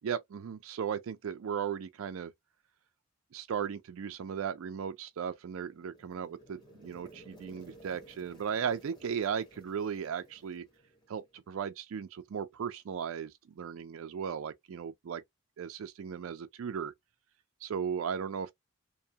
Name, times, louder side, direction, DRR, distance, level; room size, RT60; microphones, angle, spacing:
voice 1, 0.0-2.3 3.3-10.7 11.1-15.2 15.6-16.9 17.6-18.5, right 7 dB, 80° right, 0.4 m, -36 dB
sound 1, 5.4-11.4, right 1 dB, 20° left, 0.9 m, -56 dB
2.6 x 2.2 x 2.7 m
head